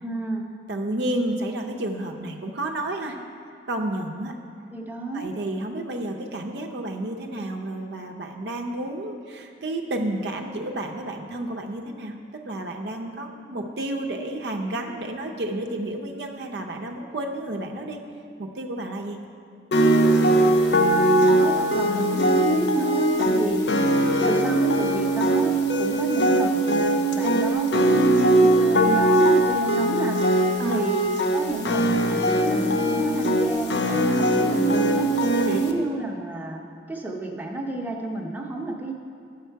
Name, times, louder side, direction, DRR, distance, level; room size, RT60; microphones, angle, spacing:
voice 1, 0.0-0.5 4.7-5.3 21.2-23.6 24.2-35.2 35.5-38.9, right 2 dB, 10° right, 0 dB, 0.8 m, -31 dB
voice 2, 0.7-3.2 3.7-4.4 5.1-18.0 18.4-19.2 23.2-23.3 30.6-30.8 35.4-35.6, right 1 dB, 65° right, 2 dB, 0.6 m, -31 dB
sound 1, 19.7-35.7, right 1 dB, 70° left, 0.6 m, -21 dB
9.4 x 6.6 x 4.6 m, 2.4 s
head